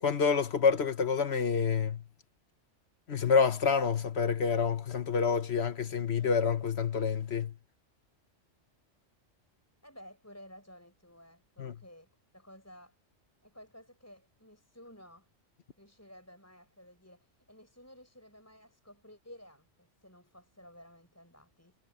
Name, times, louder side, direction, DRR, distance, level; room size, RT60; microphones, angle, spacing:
voice 1, 0.0-2.0 3.1-7.5 11.6-11.7, left 6 dB, 60° left, 1.5 m, -28 dB
voice 2, 9.8-13.0 13.4-15.3 15.8-21.8, equal, 10° left, 6.9 m, -54 dB
omnidirectional pair, 1.2 m